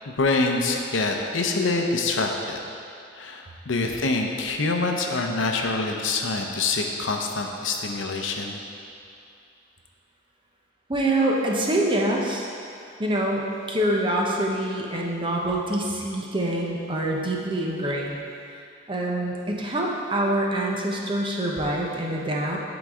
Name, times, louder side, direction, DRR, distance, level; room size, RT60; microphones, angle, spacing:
voice 1, 0.1-2.6 3.1-8.6, left 3 dB, 75° left, 2 dB, 0.6 m, -25 dB
voice 2, 10.9-12.5 13.0-18.2 18.5-18.6 18.9-22.6, right 1 dB, 25° right, -2 dB, 0.7 m, -25 dB
10.5 x 4.0 x 3.6 m, 2.5 s
head